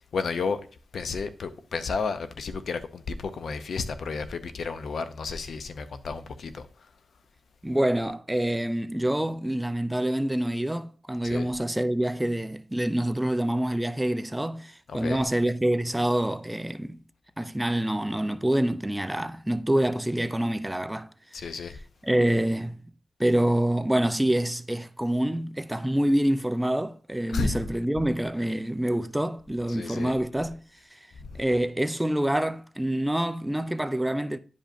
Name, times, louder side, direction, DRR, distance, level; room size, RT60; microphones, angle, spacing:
voice 1, 0.1-0.6 0.9-6.9 11.2-11.5 14.9-15.2 21.3-21.8 27.3-27.6 29.7-30.1 31.2-31.4, left 4 dB, 70° left, 0.6 m, -32 dB
voice 2, 7.6-17.0 17.4-21.1 22.0-22.8 23.2-30.6 30.9-31.0 31.3-34.4, right 1 dB, 10° right, 0.3 m, -26 dB
10.0 x 5.1 x 2.6 m
wide cardioid pair, 105°, 0 cm